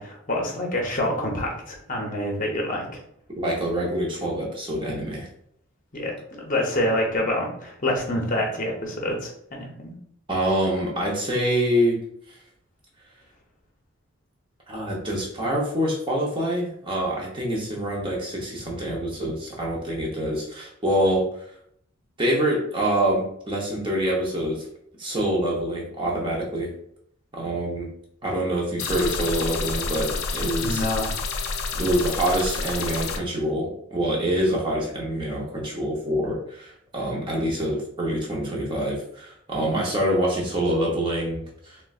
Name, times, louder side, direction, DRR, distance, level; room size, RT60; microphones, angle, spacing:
voice 1, 0.0-3.0 5.9-10.0 30.6-31.1, left 1 dB, 35° left, 0 dB, 0.7 m, -27 dB
voice 2, 3.4-5.3 10.3-12.0 12.3-12.4 14.7-21.5 22.2-24.7 25.0-26.7 27.3-27.9 28.2-30.8 31.8-41.8, right 1 dB, 20° right, -2 dB, 0.7 m, -26 dB
sound 1, 28.8-33.2, left 4 dB, 75° left, 0.4 m, -29 dB
3.8 x 2.1 x 2.3 m, 0.70 s
head